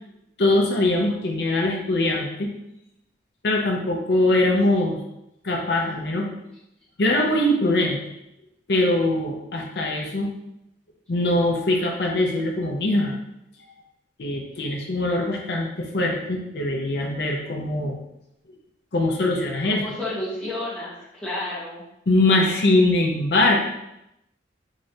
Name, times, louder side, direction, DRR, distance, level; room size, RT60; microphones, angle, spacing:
voice 1, 0.4-2.5 3.4-5.0 5.4-6.3 7.0-8.0 8.7-10.3 11.1-13.2 14.2-18.0 18.9-19.9 22.1-23.6, left 2 dB, 65° left, 0 dB, 0.6 m, -22 dB
voice 2, 19.7-21.8, left 1 dB, 5° left, -9 dB, 1.2 m, -31 dB
3.7 x 3.2 x 2.7 m, 0.84 s
head